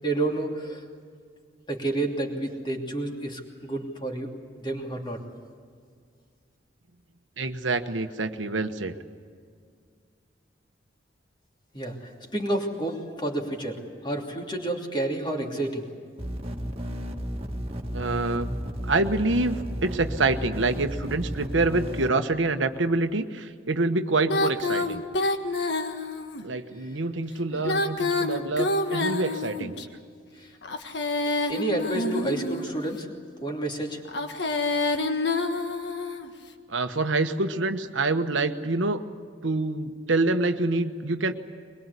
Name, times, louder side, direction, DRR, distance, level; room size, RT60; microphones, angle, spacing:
voice 1, 0.0-0.8 1.7-4.3 4.6-5.2 11.7-15.9 26.7-27.0 30.3-30.5 31.5-33.1 33.4-34.0, right 2 dB, 25° left, 1 dB, 2.9 m, -30 dB
voice 2, 7.4-9.0 17.9-18.5 18.8-25.0 26.4-29.7 36.7-39.0 39.4-41.3, right 3 dB, 90° right, 7 dB, 1.2 m, -26 dB
sound 1, 16.2-22.1, equal, 30° right, 2.0 m, -33 dB
Female singing, 24.3-26.4 27.5-29.9 30.6-32.8 34.1-36.3, left 2 dB, 65° left, 1.6 m, -27 dB
22.5 x 22.0 x 8.3 m, 2.1 s
head